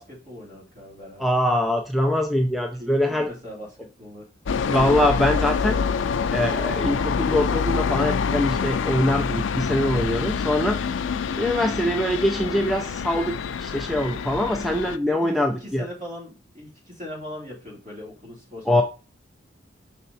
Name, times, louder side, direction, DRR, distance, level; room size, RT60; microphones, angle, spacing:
voice 1, 0.0-1.3 2.8-4.3 15.0-18.8, left 1 dB, 40° right, -4 dB, 3.1 m, -40 dB
voice 2, 1.2-3.3 4.6-5.8 6.3-10.8 11.4-15.8 18.7-18.8, left 1 dB, ahead, 4 dB, 0.4 m, -23 dB
sound 1, 4.5-15.0, left 6 dB, 85° left, 0.4 m, -26 dB
5.6 x 4.2 x 4.0 m, 0.34 s
head